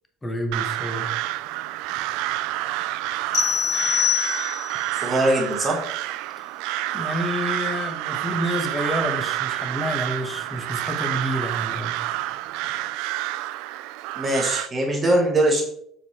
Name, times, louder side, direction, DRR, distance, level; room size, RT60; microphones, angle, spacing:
voice 1, 0.2-1.1 6.4-6.5 6.9-12.0, equal, 10° left, 5 dB, 1.0 m, -29 dB
Crow, 0.5-14.7, right 15 dB, 75° right, 0.3 m, -29 dB
sound 1, 3.3-4.9, left 7 dB, 60° left, 1.6 m, -23 dB
voice 2, 5.0-5.8 14.2-15.6, right 1 dB, 20° right, 0 dB, 1.3 m, -21 dB
6.6 x 4.9 x 4.2 m, 0.70 s
cardioid pair, 155°, 0 cm